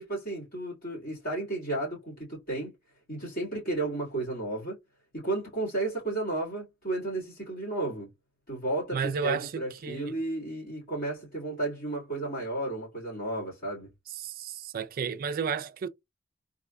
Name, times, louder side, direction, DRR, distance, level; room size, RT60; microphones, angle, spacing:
voice 1, 0.0-2.7 3.1-4.8 5.1-8.1 8.5-13.9, right 2 dB, 45° left, 2.1 m, -33 dB
voice 2, 8.9-10.1 14.2-15.9, right 6 dB, 45° right, 0.4 m, -32 dB
3.9 x 2.5 x 2.2 m
head